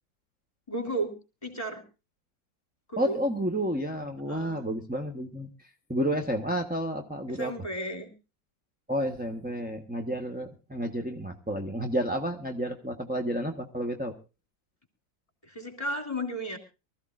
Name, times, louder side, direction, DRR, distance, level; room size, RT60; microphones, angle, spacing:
voice 1, 0.7-1.1 1.4-1.8 2.9-3.2 4.3-4.6 7.3-8.1 15.5-16.6, right 1 dB, 20° left, 5 dB, 2.9 m, -33 dB
voice 2, 3.0-7.5 8.9-14.1, equal, 5° right, 2 dB, 0.7 m, -31 dB
24.0 x 14.0 x 2.5 m, 0.30 s
omnidirectional pair, 2.0 m